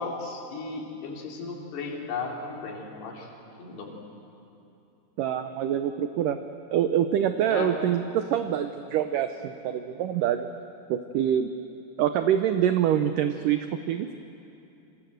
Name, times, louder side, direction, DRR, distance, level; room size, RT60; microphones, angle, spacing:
voice 1, 0.0-3.3 3.6-4.0 7.5-7.7, left 4 dB, 75° left, 0 dB, 5.2 m, -35 dB
voice 2, 5.2-6.4 6.7-10.5 10.9-11.5 12.0-14.1, right 10 dB, 80° right, 8 dB, 1.9 m, -25 dB
27.5 x 25.5 x 8.0 m, 2.8 s
omnidirectional pair, 4.7 m